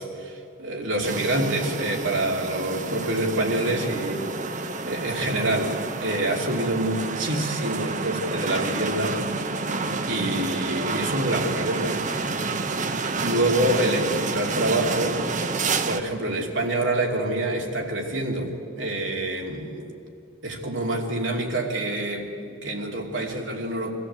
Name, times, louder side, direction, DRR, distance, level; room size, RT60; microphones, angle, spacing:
voice 1, 0.0-4.3 4.9-9.2 10.1-12.0 12.4-12.5 13.2-15.2 15.9-19.9 20.4-23.9, right 1 dB, 70° right, 0 dB, 2.7 m, -26 dB
sound 1, 1.0-16.0, right 3 dB, 40° right, 0.8 m, -29 dB
22.5 x 14.5 x 8.1 m, 2.5 s
head